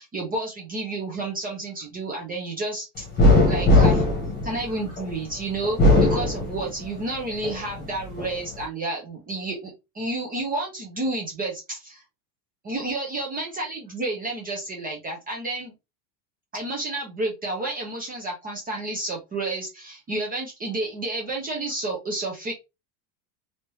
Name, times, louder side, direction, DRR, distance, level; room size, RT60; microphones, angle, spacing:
voice 1, 0.0-3.1 3.5-4.0 4.4-12.0 12.6-15.7 16.5-22.5, right 2 dB, 20° right, -1 dB, 0.8 m, -30 dB
sound 1, 3.2-5.1 5.6-7.0 7.4-8.3, left 2 dB, 20° left, 1.2 m, -19 dB
3.2 x 2.9 x 3.0 m, 0.24 s
supercardioid pair, 155°, 46 cm